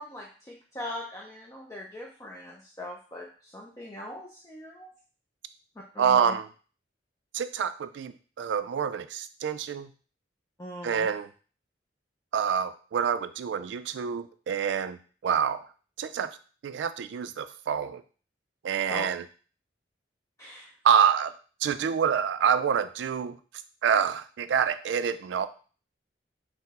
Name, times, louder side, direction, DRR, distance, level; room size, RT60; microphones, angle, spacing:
voice 1, 0.0-4.9 5.9-6.3 10.6-11.1 18.9-19.1 20.4-20.7, left 1 dB, 15° left, -3 dB, 0.4 m, -40 dB
voice 2, 6.0-6.5 7.3-9.9 10.8-11.3 12.3-15.6 16.0-16.4 16.6-18.0 18.6-19.2 20.8-21.3 21.6-23.4 23.8-25.5, right 7 dB, 75° right, 12 dB, 0.3 m, -27 dB
4.2 x 2.1 x 4.0 m, 0.39 s
head